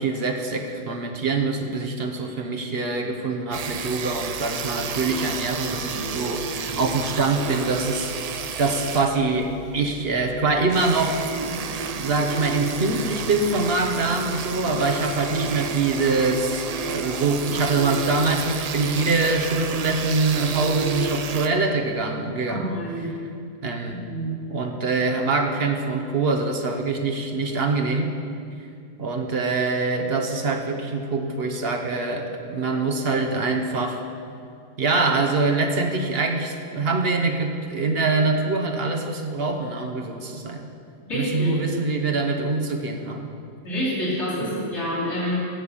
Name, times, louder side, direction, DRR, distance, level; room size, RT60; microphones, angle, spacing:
voice 1, 0.0-11.2 11.9-22.7 23.6-24.0 24.5-28.1 29.0-34.0 34.8-40.7 41.1-43.2, right 3 dB, 55° right, 3 dB, 1.1 m, -24 dB
sound 1, 3.5-21.5, right 5 dB, 85° right, 0.3 m, -31 dB
voice 2, 22.5-23.1 23.9-24.3 41.1-41.6 43.6-45.4, equal, 60° left, -6 dB, 3.3 m, -27 dB
15.5 x 6.6 x 5.6 m, 2.3 s
omnidirectional pair, 1.3 m